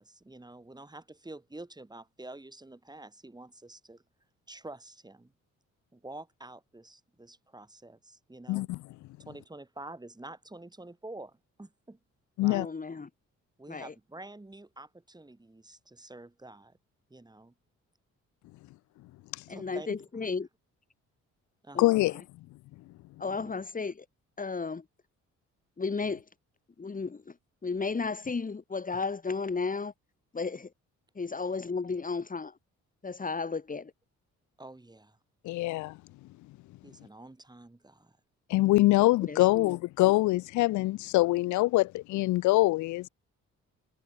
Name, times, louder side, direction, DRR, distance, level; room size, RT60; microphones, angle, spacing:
voice 1, 0.0-4.0 4.5-5.3 5.9-8.7 9.2-12.0 12.4-12.7 13.6-16.8 17.1-17.5 19.5-20.3 21.6-22.0 23.3-23.6 34.6-35.2 36.8-38.2, right 2 dB, 15° right, 6.4 m, -48 dB
voice 2, 12.5-13.1 13.7-13.9 19.5-20.5 21.7-21.9 23.2-23.9 24.4-24.8 25.8-26.2 26.8-27.2 27.6-29.9 30.3-30.7 31.2-32.5 33.0-33.9 39.3-39.7, left 4 dB, 25° left, 2.9 m, -33 dB
voice 3, 21.8-22.2 35.4-36.0 38.5-43.1, left 19 dB, 75° left, 0.4 m, -24 dB
cardioid pair, 90°, 30 cm